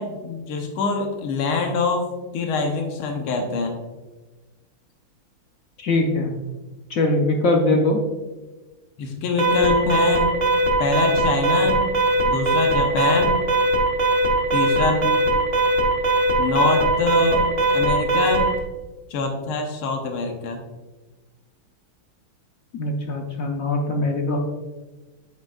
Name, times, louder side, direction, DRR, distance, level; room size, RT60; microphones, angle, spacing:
voice 1, 0.0-2.1 2.3-3.8 9.0-10.3 10.8-11.8 12.3-13.4 14.5-15.1 16.4-18.5 19.1-20.6, left 3 dB, 85° left, 3 dB, 1.8 m, -24 dB
voice 2, 5.8-6.3 6.9-8.0 22.7-24.4, left 2 dB, 60° left, 2 dB, 0.9 m, -21 dB
Alarm, 9.4-18.6, right 2 dB, 40° right, 1.3 m, -20 dB
8.8 x 6.5 x 2.4 m, 1.2 s
omnidirectional pair, 2.3 m